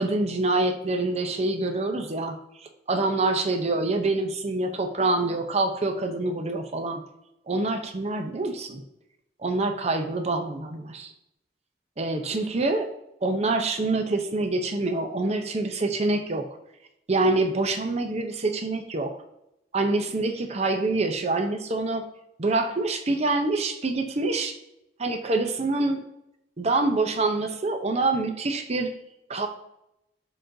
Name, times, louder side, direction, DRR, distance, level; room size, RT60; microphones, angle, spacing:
voice 1, 0.0-2.4 2.9-7.0 7.5-8.8 9.4-11.1 12.0-12.9 13.2-16.5 17.1-19.1 19.7-22.0 22.4-24.6 25.0-26.0 26.6-28.9 29.3-29.5, right 2 dB, 35° right, 5 dB, 0.7 m, -26 dB
11.0 x 3.9 x 2.7 m, 0.84 s
head